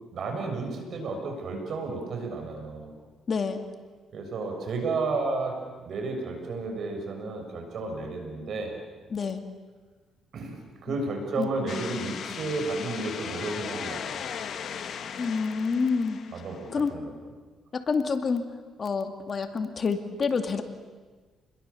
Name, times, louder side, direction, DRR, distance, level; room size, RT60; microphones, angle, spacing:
voice 1, 0.1-2.9 4.1-5.6 5.8-8.8 10.3-14.2 16.3-17.1, right 3 dB, 60° right, 3 dB, 6.8 m, -32 dB
voice 2, 3.3-3.7 9.1-9.4 10.9-11.0 11.3-11.5 15.2-16.2 16.7-16.9 17.7-18.5 18.8-20.6, left 5 dB, 45° left, 7 dB, 2.3 m, -28 dB
sound 1, 11.7-16.9, left 7 dB, 60° left, 1.7 m, -37 dB
30.0 x 22.0 x 7.1 m, 1.4 s
cardioid pair, 90°, 0 cm